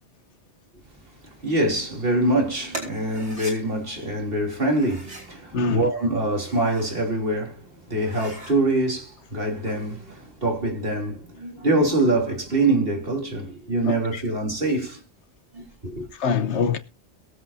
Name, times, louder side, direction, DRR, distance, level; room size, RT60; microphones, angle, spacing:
voice 1, 1.4-15.0 15.5-16.1, right 2 dB, 55° right, 3.5 m, -24 dB
sound 1, 2.7-3.6 4.7-5.3 6.2-7.0 7.4-7.5 7.9-8.6, right 1 dB, 90° right, 5.4 m, -39 dB
voice 2, 5.5-5.9 13.8-14.2 16.2-16.8, left 5 dB, 85° left, 1.2 m, -24 dB
22.0 x 8.0 x 2.7 m
omnidirectional pair, 1.1 m